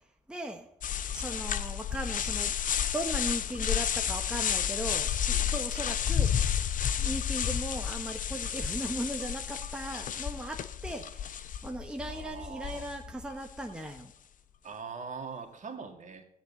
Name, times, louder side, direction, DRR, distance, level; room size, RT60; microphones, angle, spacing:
voice 1, 0.3-0.7 1.1-14.1, right 1 dB, 5° right, 3 dB, 1.2 m, -38 dB
sound 1, 0.8-13.3, left 9 dB, 40° left, 0.8 m, -31 dB
voice 2, 12.1-12.9 14.6-16.2, right 5 dB, 40° right, 5 dB, 2.1 m, -42 dB
15.5 x 9.4 x 4.1 m, 0.75 s
figure-of-eight pair, 50°, 20 cm